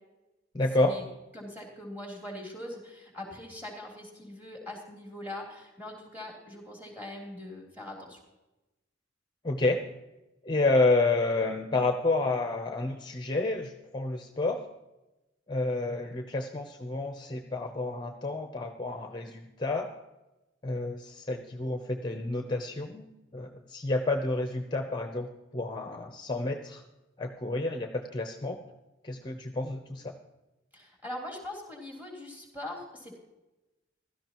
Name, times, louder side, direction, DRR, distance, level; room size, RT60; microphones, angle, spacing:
voice 1, 0.5-1.0 9.4-9.8 10.4-14.7 15.5-19.9 20.6-23.1 23.3-26.8 27.2-28.6 29.0-30.1, left 2 dB, 25° left, 5 dB, 0.7 m, -29 dB
voice 2, 1.3-8.2 30.7-33.2, left 1 dB, 10° right, -1 dB, 3.4 m, -42 dB
16.0 x 13.0 x 3.0 m, 1.0 s
head